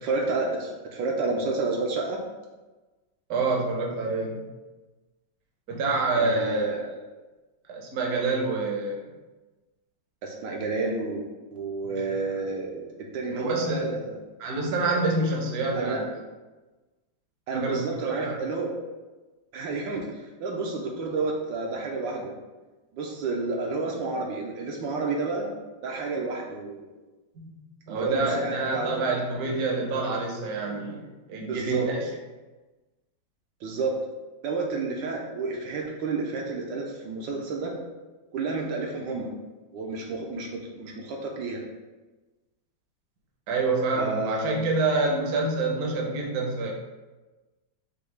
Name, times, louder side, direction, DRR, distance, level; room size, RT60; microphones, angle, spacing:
voice 1, 0.0-2.2 6.1-6.8 10.2-12.8 13.1-14.2 15.8-16.0 17.5-18.7 19.5-22.3 22.9-25.5 25.8-26.9 27.9-29.0 31.5-31.9 33.6-33.9 34.4-37.7 38.3-39.3 39.7-41.6 43.9-44.6, right 3 dB, 75° right, -1 dB, 1.3 m, -30 dB
voice 2, 3.3-4.4 5.7-6.7 7.7-9.0 13.3-13.9 14.4-16.1 17.5-18.3 27.4-27.5 27.9-31.0 31.3-32.0 43.5-46.7, right 3 dB, 60° right, 0 dB, 1.1 m, -27 dB
6.8 x 2.3 x 3.2 m, 1.2 s
omnidirectional pair, 2.1 m